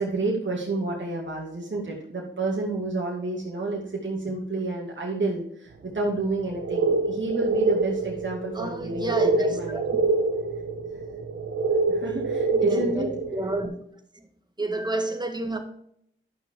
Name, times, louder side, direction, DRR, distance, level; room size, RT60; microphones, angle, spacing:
voice 1, 0.0-10.1 11.9-13.1, right 2 dB, 60° right, -3 dB, 2.4 m, -30 dB
sound 1, 6.3-13.6, right 3 dB, 85° right, 1.1 m, -26 dB
voice 2, 8.5-9.8 12.5-13.7 14.6-15.6, right 1 dB, 20° right, 5 dB, 1.9 m, -30 dB
10.0 x 6.1 x 4.8 m, 0.69 s
cardioid pair, 40°, 21 cm